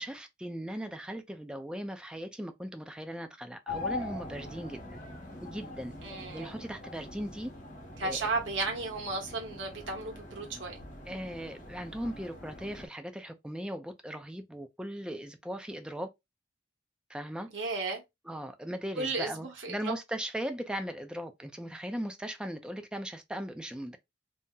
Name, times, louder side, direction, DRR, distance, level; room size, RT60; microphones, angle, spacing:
voice 1, 0.0-5.0 5.4-5.9 6.3-7.5 8.0-8.2 11.1-16.1 17.1-17.5 18.3-24.0, equal, 5° right, 0.4 m, -38 dB
sound 1, 3.7-12.9, left 2 dB, 45° left, 0.9 m, -43 dB
voice 2, 6.0-6.6 8.0-10.7 17.5-18.0 19.0-19.9, right 3 dB, 85° right, 1.1 m, -34 dB
2.7 x 2.0 x 3.6 m
head